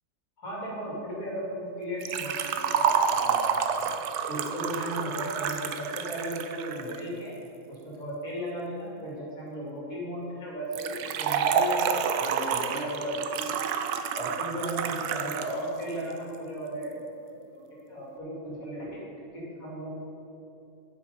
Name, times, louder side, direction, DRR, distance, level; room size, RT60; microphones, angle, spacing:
voice 1, 0.4-3.9 4.3-7.3 7.7-13.5 14.1-17.0 17.3-17.4 17.9-18.9 19.3-19.9, equal, 60° left, -5 dB, 3.1 m, -35 dB
Liquid, 2.0-7.0 10.7-15.5 15.8-15.9 16.8-16.9, right 7 dB, 80° right, 1.2 m, -29 dB
9.7 x 7.7 x 5.3 m, 2.9 s
omnidirectional pair, 1.7 m